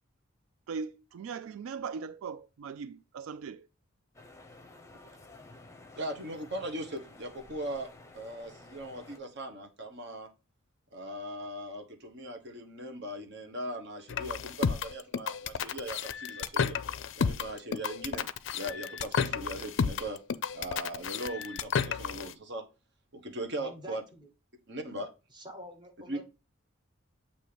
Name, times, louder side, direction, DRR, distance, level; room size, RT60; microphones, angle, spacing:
voice 1, 0.7-3.7, right 5 dB, 85° right, 0.3 m, -39 dB
sound 1, 4.1-9.2, left 2 dB, 15° left, 0.7 m, -53 dB
voice 2, 6.0-7.9 8.1-10.3 10.9-16.8 17.2-18.3 18.5-20.2 20.5-22.7 23.1-24.0 24.7-25.1 26.1-26.2, right 1 dB, 55° right, 1.2 m, -39 dB
sound 2, 14.1-22.3, left 6 dB, 60° left, 0.4 m, -32 dB
voice 3, 23.6-24.3 25.3-26.2, equal, 20° right, 1.2 m, -47 dB
7.5 x 2.8 x 5.0 m
head